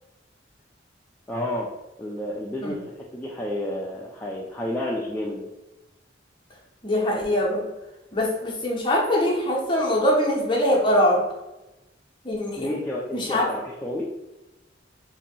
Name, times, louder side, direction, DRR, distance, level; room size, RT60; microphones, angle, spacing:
voice 1, 1.3-1.7 2.0-2.8 3.1-5.4 12.6-14.1, left 1 dB, 10° left, -4 dB, 0.3 m, -30 dB
voice 2, 6.8-7.7 8.1-11.2 12.2-12.7 13.1-13.5, left 1 dB, 25° left, -2 dB, 0.7 m, -22 dB
2.8 x 2.6 x 4.0 m, 1.0 s
head